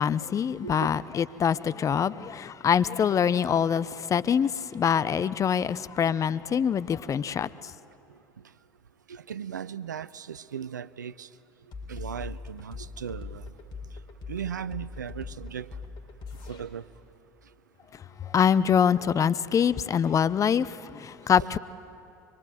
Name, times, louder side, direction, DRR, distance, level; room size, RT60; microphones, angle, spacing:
voice 1, 0.0-7.7 18.2-21.6, left 7 dB, 35° left, 0.8 m, -25 dB
voice 2, 9.1-11.3 11.9-13.5 14.3-15.7 16.5-16.8, right 8 dB, 90° right, 0.6 m, -37 dB
sound 1, 11.7-16.6, left 4 dB, 50° left, 4.2 m, -40 dB
24.5 x 24.5 x 9.4 m
hypercardioid pair, 70°, 10 cm